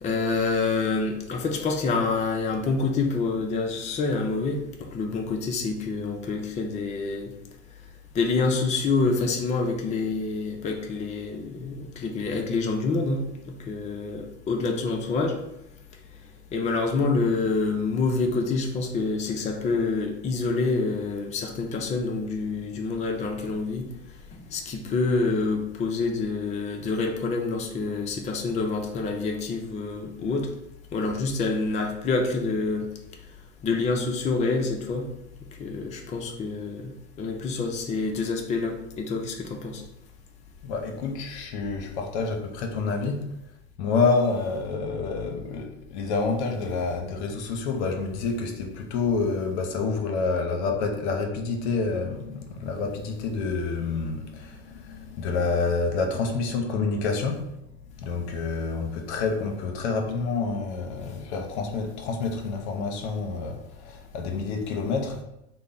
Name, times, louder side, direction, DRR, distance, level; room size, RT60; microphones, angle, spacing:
voice 1, 0.0-7.3 8.1-13.2 13.7-15.4 16.5-23.9 24.5-30.5 30.9-32.9 33.6-35.1 35.6-36.8 37.2-39.8, left 3 dB, 20° left, 0.4 m, -27 dB
voice 2, 40.6-43.3 43.8-57.5 58.0-65.2, left 4 dB, 70° left, 0.7 m, -28 dB
3.1 x 2.0 x 3.8 m
hypercardioid pair, 90°, 35 cm